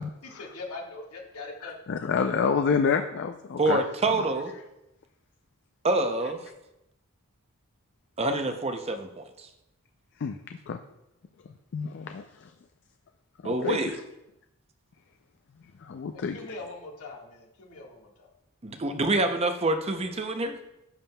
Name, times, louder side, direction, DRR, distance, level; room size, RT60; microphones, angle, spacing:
voice 1, 0.2-1.8 16.3-18.3, left 3 dB, 85° left, -1 dB, 1.6 m, -41 dB
voice 2, 1.6-3.8 4.2-4.3 10.2-10.8 11.7-12.5 13.4-13.9 15.8-16.4, left 6 dB, 55° left, 6 dB, 0.4 m, -28 dB
voice 3, 3.6-4.5 5.8-6.4 8.2-9.5 13.4-14.0 18.6-20.6, right 2 dB, 30° right, 7 dB, 0.5 m, -26 dB
10.5 x 7.1 x 2.2 m, 0.90 s
head